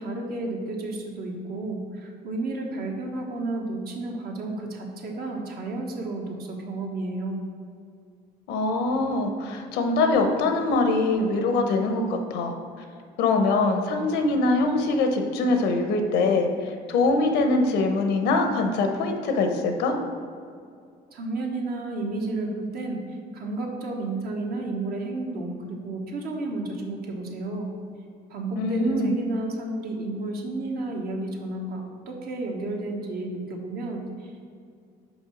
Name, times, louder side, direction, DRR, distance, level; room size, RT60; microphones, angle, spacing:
voice 1, 0.0-7.4 21.1-27.7 28.3-34.5, right 2 dB, 65° right, 0 dB, 1.3 m, -32 dB
voice 2, 8.5-12.5 13.2-20.0 28.6-29.1, left 3 dB, 90° left, 4 dB, 0.9 m, -23 dB
5.2 x 4.5 x 6.2 m, 2.3 s
cardioid pair, 110°, 17 cm